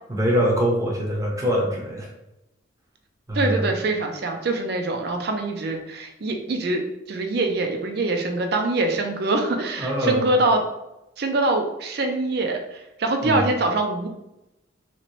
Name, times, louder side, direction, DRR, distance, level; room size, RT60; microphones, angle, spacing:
voice 1, 0.1-2.1 3.3-3.7 9.8-10.3 13.2-13.4, equal, 15° right, -2 dB, 0.7 m, -23 dB
voice 2, 3.3-6.8 7.1-10.6 11.2-14.1, right 2 dB, 55° right, 4 dB, 0.5 m, -24 dB
3.0 x 2.8 x 3.0 m, 0.91 s
head